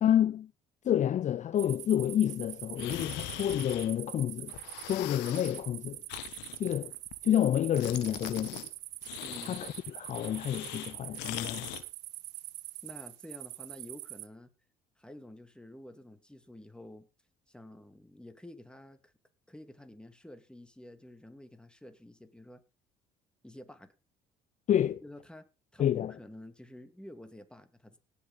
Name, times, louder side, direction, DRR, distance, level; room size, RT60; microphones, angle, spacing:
voice 1, 0.0-0.5 0.8-4.5 4.9-6.0 6.6-6.9 7.2-8.6 9.4-11.7 24.7-25.0 25.8-26.1, left 10 dB, 45° left, 0.5 m, -29 dB
sound 1, 1.6-14.3, right 20 dB, 75° right, 0.7 m, -44 dB
sound 2, 2.8-4.2 4.5-5.6 6.1-7.5 7.8-8.7 9.0-11.8, left 15 dB, 75° left, 1.4 m, -41 dB
voice 2, 9.2-9.6 12.8-14.5 15.0-17.1 17.5-19.1 19.5-22.6 23.4-23.9 25.0-25.5 25.7-28.0, left 1 dB, 5° left, 2.4 m, -50 dB
17.5 x 6.8 x 3.9 m
hypercardioid pair, 65°, 18 cm